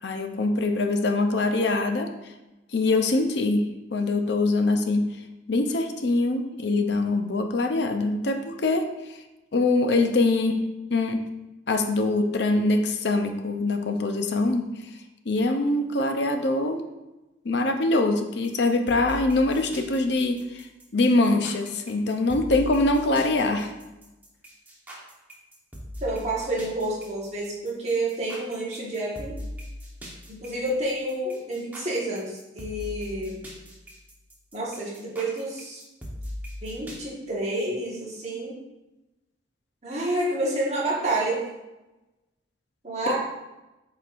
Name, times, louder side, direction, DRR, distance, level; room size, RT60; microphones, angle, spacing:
voice 1, 0.0-2.3 2.7-5.1 5.5-9.2 9.5-10.6 10.9-11.2 11.7-14.9 15.3-16.8 17.4-20.7 20.9-23.7 43.1-43.2, left 2 dB, 60° left, 6 dB, 0.6 m, -24 dB
sound 1, 18.4-37.0, equal, 10° right, 1.1 m, -40 dB
voice 2, 26.0-29.4 30.3-33.4 34.5-35.8 36.6-38.6 39.8-41.4 42.8-43.2, right 1 dB, 35° right, -6 dB, 1.4 m, -29 dB
8.0 x 4.6 x 2.5 m, 1.0 s
head